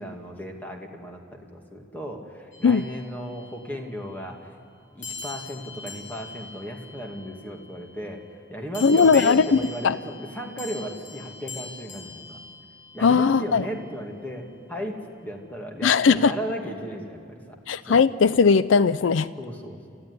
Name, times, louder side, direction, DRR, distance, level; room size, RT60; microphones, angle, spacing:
voice 1, 0.0-4.5 4.9-12.4 12.9-17.6 17.9-18.1 19.4-20.0, equal, 10° left, 1 dB, 2.3 m, -35 dB
sound 1, 2.5-3.7 5.0-7.7 8.7-13.3, left 4 dB, 65° left, 7.1 m, -42 dB
voice 2, 8.8-10.0 13.0-13.7 15.8-16.3 17.7-19.3, left 5 dB, 85° left, 15 dB, 0.5 m, -19 dB
29.0 x 15.0 x 9.8 m, 2.4 s
head